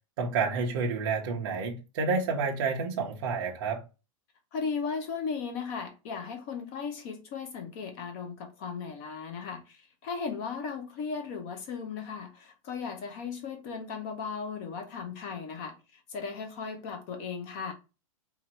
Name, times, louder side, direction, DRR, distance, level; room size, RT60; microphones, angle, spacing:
voice 1, 0.2-3.8, right 4 dB, 40° right, 0.8 m, -29 dB
voice 2, 4.5-17.7, left 5 dB, 25° left, 0.6 m, -36 dB
4.3 x 2.6 x 2.9 m
supercardioid pair, 180°, 18 cm